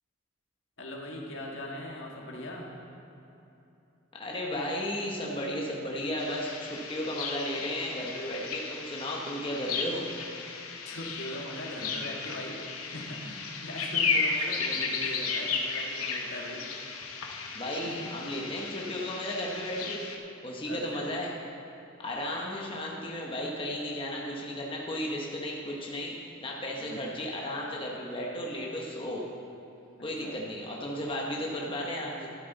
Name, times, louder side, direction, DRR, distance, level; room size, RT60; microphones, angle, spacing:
voice 1, 0.8-2.7 10.8-16.7 17.8-18.1 20.6-21.1 26.7-27.0 30.0-30.4, left 1 dB, 60° left, -1 dB, 1.6 m, -40 dB
voice 2, 4.2-10.1 17.5-20.0 20.4-21.3 22.0-26.1 26.4-29.2 30.0-32.3, left 1 dB, 25° left, -2 dB, 1.1 m, -34 dB
sound 1, 6.2-20.2, left 4 dB, 90° left, 1.0 m, -34 dB
12.5 x 9.5 x 4.1 m, 2.9 s
head